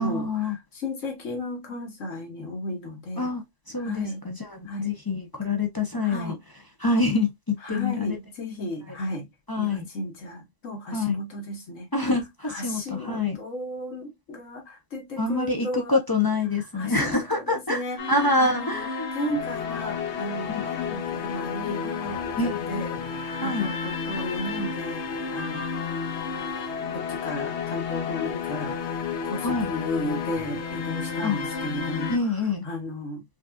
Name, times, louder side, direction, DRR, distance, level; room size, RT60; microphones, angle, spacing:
voice 1, 0.0-0.6 3.2-6.3 6.8-8.2 9.5-9.9 10.9-11.2 11.9-13.4 15.2-17.8 18.1-19.1 20.5-20.6 22.4-22.7 23.4-23.7 29.4-29.7 31.2-31.4 32.1-32.7, left 3 dB, 30° left, 0.4 m, -26 dB
voice 2, 0.7-3.3 3.8-4.2 4.7-4.9 6.0-6.4 7.6-9.3 9.6-11.9 12.5-16.0 16.7-18.9 19.1-25.1 25.3-25.6 26.9-32.1 32.6-33.2, left 1 dB, 85° left, 1.7 m, -34 dB
sound 1, 18.0-32.2, left 6 dB, 65° left, 1.0 m, -31 dB
5.2 x 2.5 x 2.2 m
omnidirectional pair, 1.3 m